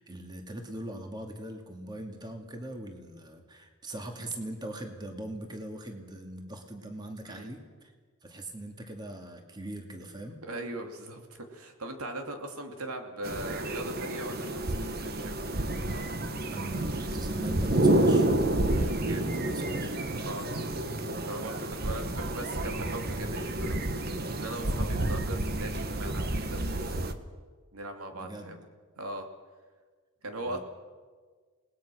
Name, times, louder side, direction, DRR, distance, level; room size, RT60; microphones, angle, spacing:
voice 1, 0.0-7.9 8.2-10.4 16.5-18.3 19.3-19.9 21.8-22.2 28.1-28.6 30.4-30.6, right 1 dB, 20° right, 3 dB, 2.3 m, -41 dB
voice 2, 10.4-15.4 18.7-19.3 20.2-20.8 21.2-24.0 24.4-27.1 27.7-28.6 29.0-29.3 30.2-30.6, right 1 dB, 85° right, 4 dB, 2.8 m, -40 dB
sound 1, 13.2-27.1, right 1 dB, 45° right, 1.4 m, -29 dB
28.0 x 20.0 x 6.3 m, 1.5 s
head